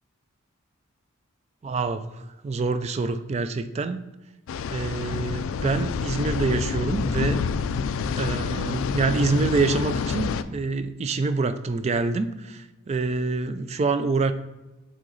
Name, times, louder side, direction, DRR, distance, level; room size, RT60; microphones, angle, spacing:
voice 1, 1.6-4.0 4.7-7.4 8.1-14.3, right 3 dB, 30° right, 11 dB, 0.3 m, -26 dB
sound 1, 4.5-10.4, left 5 dB, 65° left, 0.3 m, -28 dB
6.2 x 3.8 x 4.0 m, 1.1 s
head